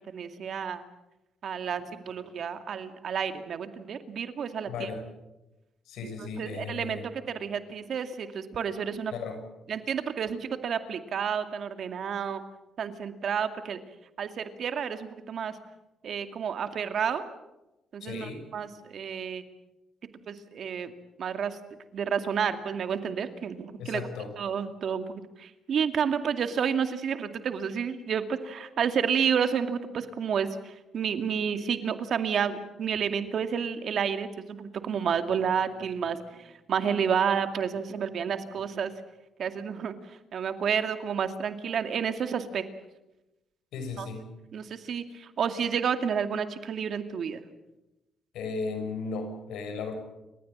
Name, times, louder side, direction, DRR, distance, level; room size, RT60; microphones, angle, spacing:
voice 1, 0.1-0.8 1.4-4.9 6.2-9.1 9.7-12.4 12.8-13.8 14.2-15.6 16.0-17.2 17.9-19.4 20.3-20.9 21.2-21.6 21.9-24.0 24.4-25.1 25.4-38.9 39.4-42.7 44.0-44.1 44.5-47.4, right 7 dB, 60° right, 8 dB, 2.2 m, -30 dB
voice 2, 4.7-5.0 5.9-7.0 9.1-9.4 18.0-18.4 23.8-24.3 43.7-44.3 48.3-49.9, left 4 dB, 85° left, 5 dB, 6.6 m, -35 dB
29.5 x 15.0 x 8.9 m, 0.98 s
cardioid pair, 90°, 0 cm